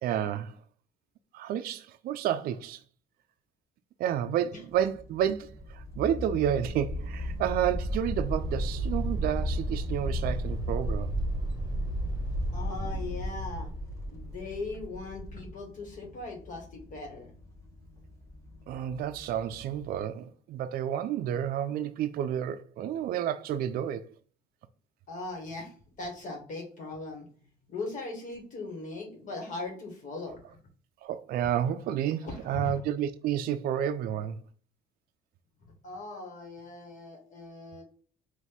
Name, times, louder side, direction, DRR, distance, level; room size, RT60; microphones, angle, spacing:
voice 1, 0.0-0.5 1.3-2.8 4.0-11.1 18.7-24.0 31.0-34.4, right 10 dB, 60° right, 0.4 m, -30 dB
sound 1, 4.7-20.0, left 2 dB, 15° left, 1.2 m, -44 dB
sound 2, 5.5-15.5, right 1 dB, 25° right, 1.1 m, -33 dB
voice 2, 12.5-13.7 14.1-17.3 25.1-25.7 26.0-27.2 27.7-30.4 32.2-32.8 35.8-37.8, left 3 dB, 50° left, 1.6 m, -39 dB
4.1 x 2.6 x 3.5 m
cardioid pair, 110°, 17 cm